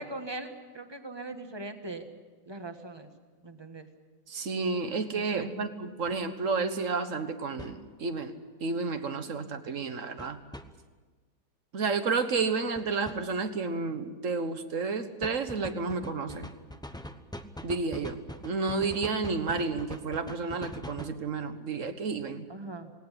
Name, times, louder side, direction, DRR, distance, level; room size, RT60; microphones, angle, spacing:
voice 1, 0.0-2.1 2.4-3.1 3.4-3.9 5.1-5.5 22.5-22.9, right 2 dB, 15° right, 7 dB, 1.5 m, -40 dB
voice 2, 4.3-10.4 11.7-16.5 17.6-22.5, right 4 dB, 50° right, 10 dB, 1.6 m, -31 dB
Bread Box Percussion, 6.0-6.2 7.6-7.8 10.2-10.6 12.8-13.2 15.2-21.2, equal, 5° left, 0.6 m, -42 dB
18.5 x 18.5 x 10.0 m, 1.4 s
omnidirectional pair, 1.8 m